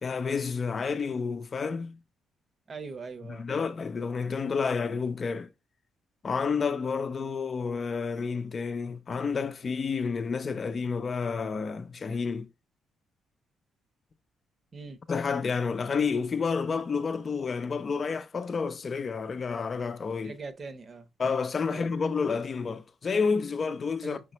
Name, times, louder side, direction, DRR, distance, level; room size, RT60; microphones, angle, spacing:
voice 1, 0.0-2.0 3.3-5.5 6.2-12.5 15.1-20.3 21.2-24.2, left 5 dB, 40° left, 0.6 m, -30 dB
voice 2, 2.7-3.5 14.7-15.0 20.2-21.1 21.7-21.9 24.0-24.2, right 4 dB, 40° right, 0.8 m, -41 dB
5.2 x 3.3 x 3.0 m
cardioid pair, 85°, 0 cm